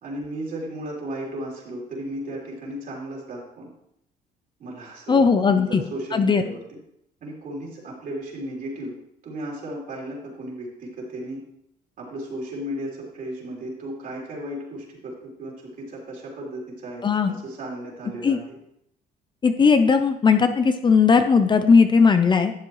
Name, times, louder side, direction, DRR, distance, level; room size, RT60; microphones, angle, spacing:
voice 1, 0.0-3.7 4.6-5.2 5.5-6.8 7.2-8.9 9.2-11.4 12.0-18.6, right 1 dB, 55° right, -3 dB, 3.5 m, -35 dB
voice 2, 5.1-5.8 6.1-6.4 17.0-17.3 18.2-18.4 19.4-22.5, left 5 dB, 25° left, 8 dB, 0.6 m, -17 dB
12.0 x 7.5 x 3.1 m, 0.76 s
cardioid pair, 110°, 17 cm